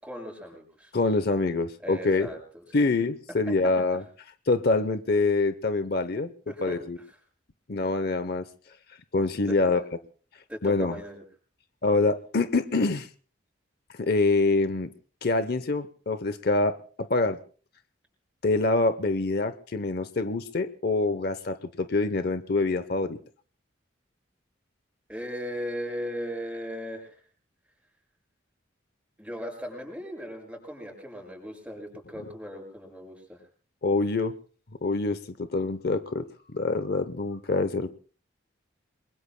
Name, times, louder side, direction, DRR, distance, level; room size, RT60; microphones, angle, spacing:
voice 1, 0.0-1.3 1.8-2.4 2.7-2.9 3.9-4.0 6.5-7.0 7.8-7.9 9.5-9.8 10.5-11.2 25.1-27.2 29.2-33.4, equal, 5° right, 1 dB, 6.4 m, -38 dB
voice 2, 0.9-2.3 2.7-6.3 6.6-7.0 7.7-8.5 9.1-9.8 10.6-11.0 11.8-13.1 14.0-14.9 15.2-17.4 18.4-23.2 33.8-34.3 34.8-37.9, left 3 dB, 55° left, 12 dB, 0.8 m, -25 dB
29.0 x 22.0 x 2.2 m, 0.40 s
head